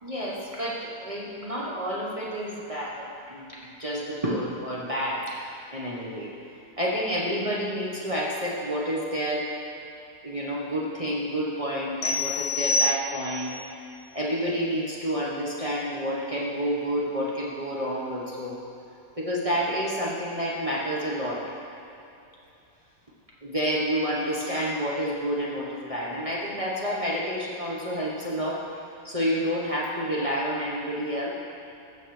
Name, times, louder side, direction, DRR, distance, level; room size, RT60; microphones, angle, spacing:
voice 1, 0.0-6.3 6.8-9.5 10.2-13.6 14.1-18.6 19.2-21.5 23.4-28.6 29.0-31.3, equal, 25° right, -5 dB, 0.8 m, -29 dB
sound 1, 12.0-13.5, left 2 dB, 65° left, 0.6 m, -27 dB
15.0 x 6.5 x 3.2 m, 2.8 s
omnidirectional pair, 2.0 m